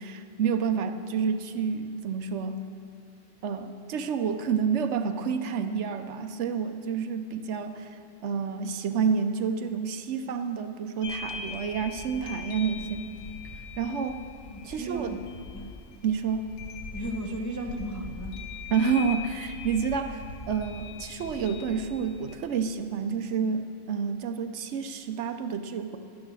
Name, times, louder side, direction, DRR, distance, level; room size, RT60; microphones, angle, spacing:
voice 1, 0.0-2.6 3.4-13.1 13.8-14.2 14.6-15.1 16.0-16.5 18.7-26.0, right 6 dB, 70° right, 8 dB, 0.9 m, -29 dB
sound 1, 11.0-22.4, left 4 dB, 90° left, 1.5 m, -41 dB
voice 2, 14.5-15.2 15.5-15.7 16.9-18.4, right 1 dB, 20° left, 1 dB, 0.7 m, -35 dB
12.0 x 9.5 x 6.2 m, 2.3 s
omnidirectional pair, 1.3 m